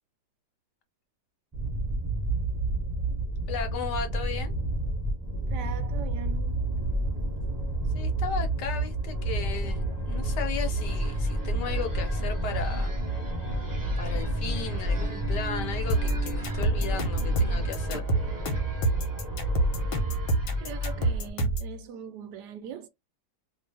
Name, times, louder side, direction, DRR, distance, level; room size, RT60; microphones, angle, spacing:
sound 1, 1.5-21.3, right 1 dB, 25° right, 0.5 m, -30 dB
voice 1, 3.5-4.5 7.9-12.9 14.0-18.1, left 6 dB, 70° left, 1.5 m, -35 dB
voice 2, 5.5-6.5 20.6-22.9, right 8 dB, 75° right, 1.1 m, -41 dB
sound 2, 15.9-21.7, right 2 dB, 85° left, 1.6 m, -27 dB
3.0 x 2.7 x 3.3 m
omnidirectional pair, 2.0 m